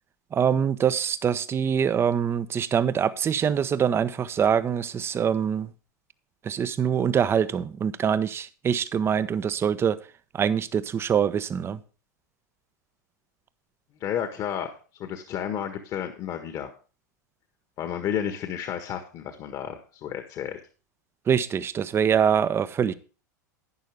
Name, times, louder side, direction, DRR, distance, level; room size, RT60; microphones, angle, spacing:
voice 1, 0.3-5.7 6.4-10.0 10.3-11.8 21.3-22.9, right 8 dB, 25° right, 0.8 m, -24 dB
voice 2, 14.0-16.7 17.8-20.6, left 9 dB, 40° left, 1.5 m, -32 dB
11.0 x 10.5 x 3.5 m
figure-of-eight pair, 90°, 10 cm